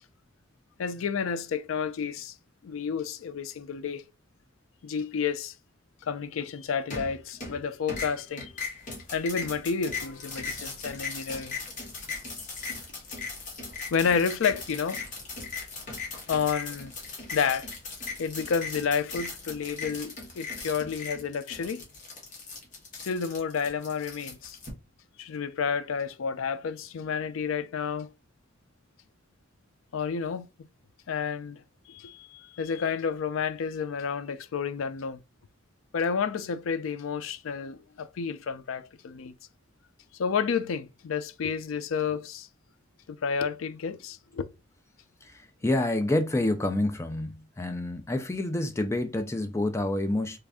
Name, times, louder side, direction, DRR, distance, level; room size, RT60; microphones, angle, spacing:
voice 1, 0.8-2.3 2.6-4.0 4.8-5.5 6.0-8.6 9.1-11.5 13.9-15.0 16.3-16.9 17.3-17.7 18.2-21.9 22.9-24.6 25.2-28.1 29.9-30.5 31.1-31.6 31.9-35.2 35.9-39.3 40.2-42.5 43.1-44.5, left 6 dB, 85° left, 0.4 m, -30 dB
sound 1, 6.9-7.6 7.9-24.7, left 4 dB, 40° left, 1.2 m, -38 dB
voice 2, 45.6-50.4, left 1 dB, 15° left, 0.4 m, -28 dB
3.3 x 2.5 x 3.5 m
head